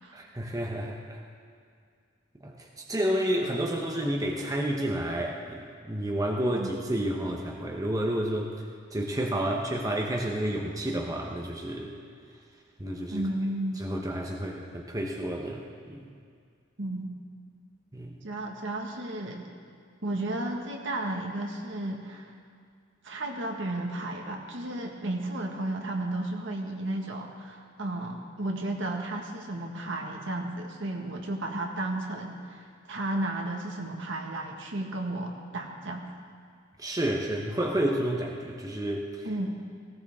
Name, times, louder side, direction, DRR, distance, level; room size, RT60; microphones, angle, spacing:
voice 1, 0.1-1.2 2.4-8.5 8.9-11.9 12.8-13.2 13.8-16.1 17.9-18.2 36.8-39.1, right 1 dB, 15° right, 0 dB, 1.0 m, -30 dB
voice 2, 13.1-13.9 16.8-17.1 18.2-19.4 20.0-22.3 23.0-36.1 39.2-39.6, right 1 dB, 65° right, 1 dB, 1.7 m, -33 dB
18.0 x 17.0 x 3.7 m, 2.2 s
head